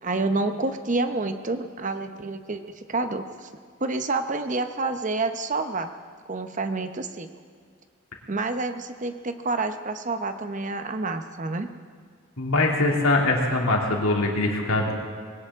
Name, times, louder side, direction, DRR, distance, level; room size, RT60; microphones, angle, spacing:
voice 1, 0.0-3.5 3.8-5.9 6.3-7.3 8.3-11.7, right 3 dB, 35° right, 8 dB, 0.9 m, -28 dB
voice 2, 12.4-14.9, left 2 dB, 80° left, 0 dB, 2.7 m, -22 dB
21.0 x 17.5 x 3.7 m, 2.1 s
head